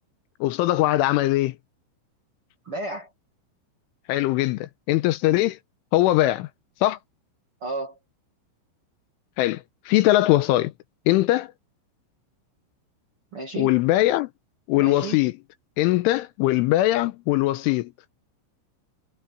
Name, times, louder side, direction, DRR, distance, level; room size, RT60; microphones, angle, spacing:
voice 1, 0.4-1.6 4.1-5.6 5.9-6.5 6.8-7.0 9.4-10.7 11.1-11.5 13.6-14.3 14.7-15.3 15.8-17.9, left 16 dB, 85° left, 3.2 m, -21 dB
voice 2, 2.6-3.1 5.3-5.4 7.6-8.0 13.3-13.7 14.8-15.2, right 3 dB, 45° right, 1.9 m, -32 dB
omnidirectional pair, 5.9 m